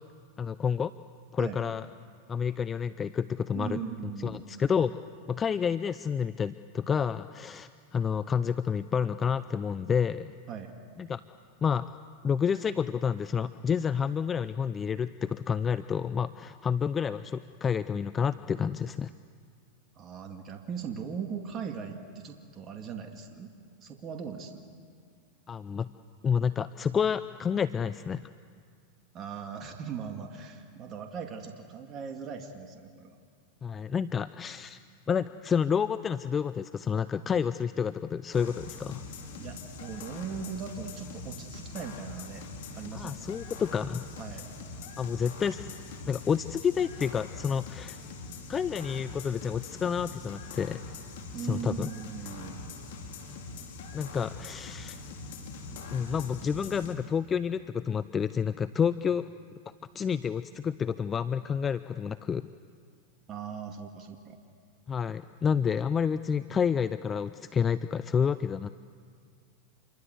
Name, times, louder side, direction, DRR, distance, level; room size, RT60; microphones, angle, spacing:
voice 1, 0.4-0.9 1.3-1.9 2.3-3.8 4.2-5.0 5.3-10.3 11.0-11.2 11.6-11.9 12.2-19.1 25.5-25.9 26.2-28.3 33.6-34.8 35.1-39.0 42.9-44.1 45.0-45.7 46.1-48.0 48.5-50.8 51.4-51.9 53.9-55.0 55.9-59.3 59.9-62.5 64.9-68.7, left 7 dB, 25° left, 14 dB, 0.6 m, -29 dB
voice 2, 3.5-4.4 10.5-10.7 20.0-23.5 23.8-24.7 29.1-33.2 39.4-42.5 42.8-43.2 44.2-44.5 51.3-52.6 63.3-64.4, right 7 dB, 35° right, 3 dB, 2.4 m, -39 dB
sound 1, 38.3-56.9, left 4 dB, 70° left, 4.8 m, -43 dB
27.5 x 23.5 x 8.2 m, 2.2 s
hypercardioid pair, 105°, 0 cm